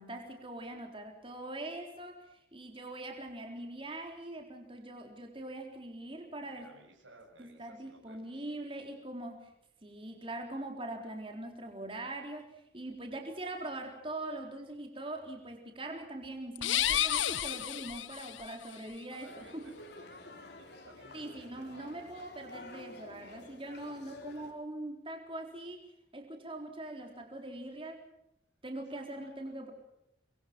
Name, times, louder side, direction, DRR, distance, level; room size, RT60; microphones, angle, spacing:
voice 1, 0.0-6.7 7.4-9.4 9.8-19.7 21.1-25.8 26.1-28.1 28.6-29.7, right 1 dB, 25° right, 3 dB, 4.0 m, -42 dB
voice 2, 6.4-8.4 19.1-21.9 28.9-29.4, right 2 dB, 80° right, 0 dB, 6.8 m, -58 dB
sound 1, 16.5-18.5, left 11 dB, 80° left, 0.9 m, -31 dB
sound 2, 19.2-24.5, left 2 dB, 60° left, 4.3 m, -51 dB
25.5 x 23.0 x 6.0 m, 0.81 s
head